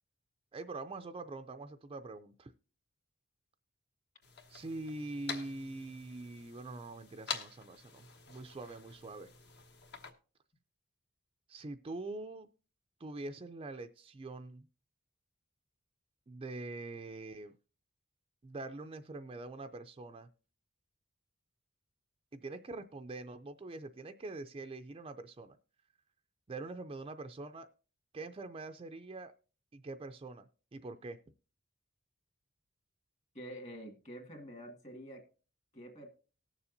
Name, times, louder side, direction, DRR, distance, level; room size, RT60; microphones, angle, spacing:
voice 1, 0.5-2.5 4.5-9.3 11.5-12.5 13.0-14.7 16.3-17.6 18.4-20.3 22.3-25.6 26.5-27.7 28.1-29.3 29.7-31.2, right 2 dB, 25° right, 7 dB, 0.4 m, -44 dB
sound 1, 4.2-10.1, left 5 dB, 55° left, 1.2 m, -47 dB
voice 2, 33.3-35.2 35.7-36.1, equal, 35° left, 4 dB, 1.9 m, -47 dB
19.0 x 7.0 x 2.6 m, 0.36 s
head